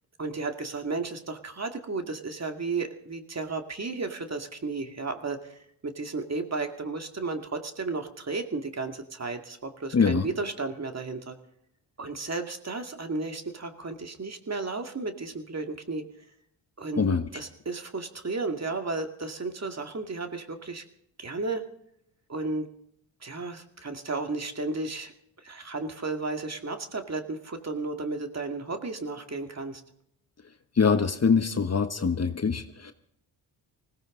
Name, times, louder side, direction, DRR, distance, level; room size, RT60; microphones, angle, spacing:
voice 1, 0.2-11.4 12.0-16.0 16.8-17.0 17.3-20.8 21.2-21.6 22.3-22.7 23.2-25.1 25.4-29.8, right 3 dB, 35° right, 5 dB, 2.3 m, -33 dB
voice 2, 9.9-10.3 17.0-17.2 30.8-32.9, left 5 dB, 30° left, 9 dB, 1.2 m, -23 dB
20.0 x 16.5 x 3.8 m, 0.73 s
supercardioid pair, 55°, 47 cm